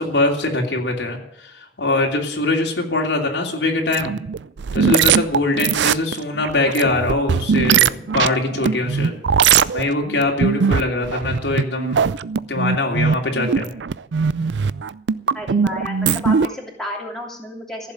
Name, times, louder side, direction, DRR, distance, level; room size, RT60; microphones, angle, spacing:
voice 1, 0.0-4.1 4.7-9.2 9.7-12.1 12.5-13.7, left 2 dB, 80° left, 1 dB, 2.9 m, -22 dB
sound 1, 3.9-16.5, right 6 dB, 90° right, 0.5 m, -20 dB
voice 2, 15.3-17.9, left 1 dB, 5° left, -2 dB, 2.9 m, -32 dB
15.5 x 7.4 x 8.8 m, 0.76 s
head